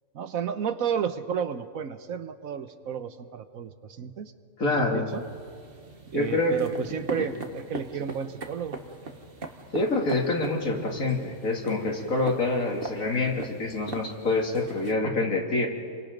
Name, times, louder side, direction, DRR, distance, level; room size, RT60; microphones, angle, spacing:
voice 1, 0.1-3.7 4.0-4.3 4.7-5.2 6.1-8.8, right 7 dB, 85° right, 10 dB, 1.4 m, -32 dB
voice 2, 4.6-5.1 6.1-6.5 7.1-7.2 9.7-15.7, left 2 dB, 90° left, 0 dB, 3.0 m, -26 dB
sound 1, 5.1-14.9, right 3 dB, 45° right, 1.6 m, -41 dB
29.5 x 24.0 x 5.2 m, 2.2 s
omnidirectional pair, 1.4 m